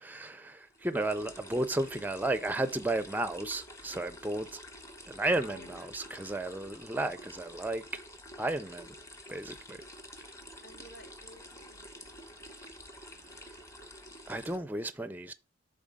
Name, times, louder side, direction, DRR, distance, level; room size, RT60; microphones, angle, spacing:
voice 1, 0.0-4.6 5.1-7.8 8.4-8.9 9.3-9.8 14.3-15.3, right 2 dB, 10° right, 0.4 m, -33 dB
sound 1, 0.7-14.6, equal, 15° left, 0.9 m, -49 dB
voice 2, 5.2-6.3 10.6-12.0, left 2 dB, 60° left, 1.8 m, -54 dB
7.3 x 4.1 x 5.2 m
head